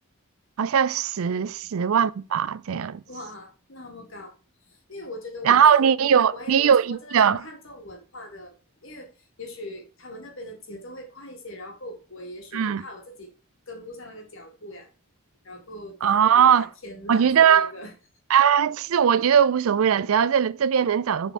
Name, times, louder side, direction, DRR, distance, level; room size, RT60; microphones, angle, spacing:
voice 1, 0.6-3.0 5.4-7.4 12.5-12.8 16.0-16.7 17.1-17.7 18.3-21.3, right 8 dB, 75° right, 0.4 m, -20 dB
voice 2, 3.1-4.3 4.7-8.6 8.8-9.1 9.4-13.3 13.7-14.9 15.4-17.9, left 1 dB, 60° left, 2.0 m, -41 dB
6.7 x 4.2 x 4.7 m
head